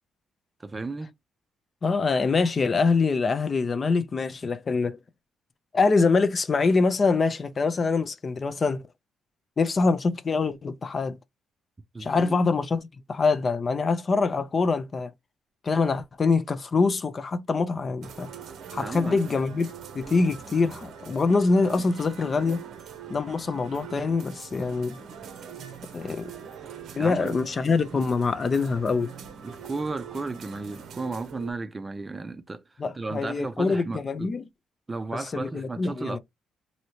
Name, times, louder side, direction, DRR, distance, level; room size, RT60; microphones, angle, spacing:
voice 1, 0.6-1.1 11.9-12.4 18.8-19.2 27.0-27.4 27.9-28.0 29.4-32.6 32.9-34.3 34.9-36.2, right 3 dB, 25° right, 0.5 m, -34 dB
voice 2, 1.8-5.0 5.7-8.8 9.6-11.2 12.0-15.1 15.6-18.3 18.7-22.6 23.1-25.0 25.9-26.3 26.9-29.1 32.8-34.5 35.1-36.2, left 4 dB, 40° left, 0.5 m, -24 dB
sound 1, 18.0-31.5, right 7 dB, 75° right, 0.6 m, -43 dB
3.0 x 2.7 x 2.8 m
cardioid pair, 90°, 0 cm